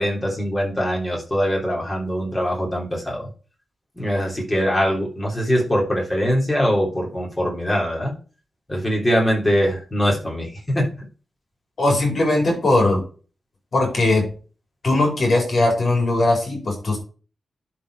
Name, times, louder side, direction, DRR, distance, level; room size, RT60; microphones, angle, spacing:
voice 1, 0.0-3.3 4.0-8.1 8.7-10.9, equal, 15° left, -2 dB, 3.1 m, -22 dB
voice 2, 11.8-13.0 13.7-14.3 14.8-17.0, left 2 dB, 45° left, 0 dB, 4.7 m, -19 dB
11.0 x 4.4 x 4.7 m, 0.37 s
wide cardioid pair, 180°, 0 cm